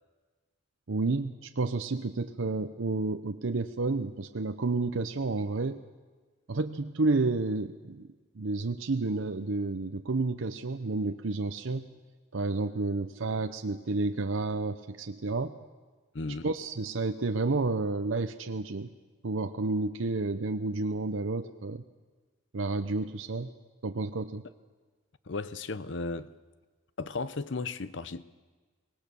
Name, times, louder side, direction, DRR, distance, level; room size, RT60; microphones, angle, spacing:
voice 1, 0.9-5.8 6.5-8.1 8.4-11.9 12.3-15.5 16.4-18.9 19.2-21.8 22.5-23.5 23.8-24.4, right 3 dB, 75° right, 0.8 m, -30 dB
voice 2, 16.1-16.5 25.3-26.3 27.0-28.2, left 3 dB, 65° left, 0.7 m, -35 dB
24.0 x 19.5 x 7.0 m
head